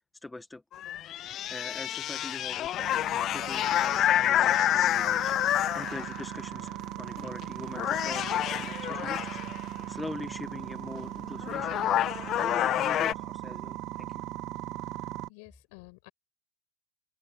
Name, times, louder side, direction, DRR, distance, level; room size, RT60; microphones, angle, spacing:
voice 1, 0.1-0.6 1.1-11.8 12.3-14.3, left 2 dB, 10° left, 1.4 m, -43 dB
sound 1, 0.7-6.3 7.2-7.5 7.8-9.6 11.0-11.1 11.4-13.1, left 12 dB, 40° left, 0.4 m, -28 dB
sound 2, 2.8-15.3, right 16 dB, 45° right, 2.0 m, -39 dB
voice 2, 14.7-16.1, left 31 dB, 60° left, 6.9 m, -53 dB
hypercardioid pair, 110°, 0 cm